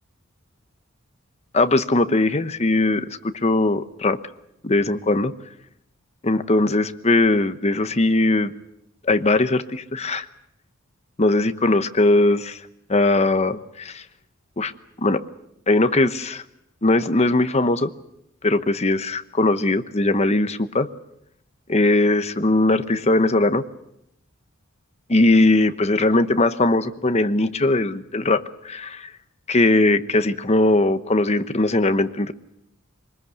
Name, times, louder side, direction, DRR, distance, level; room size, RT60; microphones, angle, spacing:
voice 1, 1.5-4.2 4.6-5.3 6.2-8.5 9.0-10.3 11.2-12.6 12.9-14.0 14.6-14.7 15.0-15.2 15.7-16.4 16.8-17.9 18.4-20.9 21.7-23.6 25.1-29.1 29.5-32.3, left 2 dB, 30° left, 10 dB, 1.0 m, -20 dB
24.0 x 20.0 x 8.1 m, 0.80 s
head